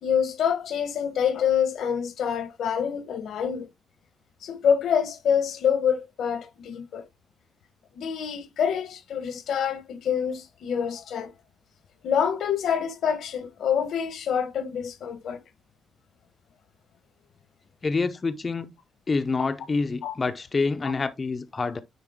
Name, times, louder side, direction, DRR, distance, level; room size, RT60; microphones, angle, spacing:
voice 1, 0.0-3.7 4.4-7.0 8.0-11.3 12.0-15.4 20.0-20.1, left 8 dB, 70° left, 1.1 m, -26 dB
voice 2, 17.8-18.7 19.1-21.8, left 4 dB, 25° left, 0.6 m, -27 dB
9.8 x 3.7 x 3.5 m
wide cardioid pair, 170°, 0 cm